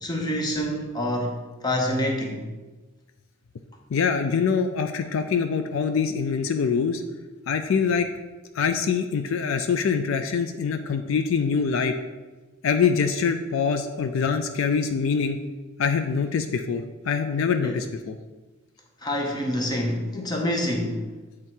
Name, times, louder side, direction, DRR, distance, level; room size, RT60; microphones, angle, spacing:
voice 1, 0.0-2.4 17.6-17.8 19.0-21.0, left 1 dB, 20° left, 1 dB, 0.7 m, -27 dB
voice 2, 3.9-7.0 7.5-8.1 8.5-12.0 12.6-15.4 15.8-18.2, left 6 dB, 65° left, 7 dB, 0.4 m, -24 dB
8.2 x 3.7 x 4.4 m, 1.2 s
head